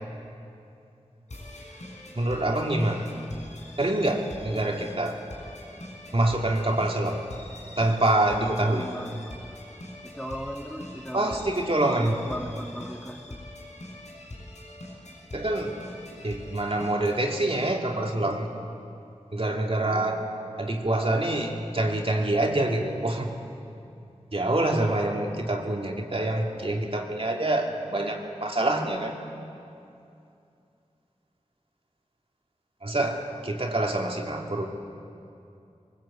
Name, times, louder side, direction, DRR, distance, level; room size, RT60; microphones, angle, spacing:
sound 1, 1.3-17.3, left 1 dB, 80° left, 6.1 m, -43 dB
voice 1, 2.1-3.1 3.8-5.2 6.1-7.2 7.8-8.9 11.1-12.1 15.3-15.8 16.2-18.5 19.3-20.2 20.6-23.3 24.3-29.1 32.8-34.7, right 1 dB, 50° right, 1 dB, 2.6 m, -26 dB
voice 2, 8.7-9.4 10.0-11.5 11.8-13.4 19.8-20.2 24.6-24.7, equal, 5° left, 1 dB, 1.7 m, -38 dB
22.0 x 20.5 x 8.6 m, 2.6 s
wide cardioid pair, 60°, 12 cm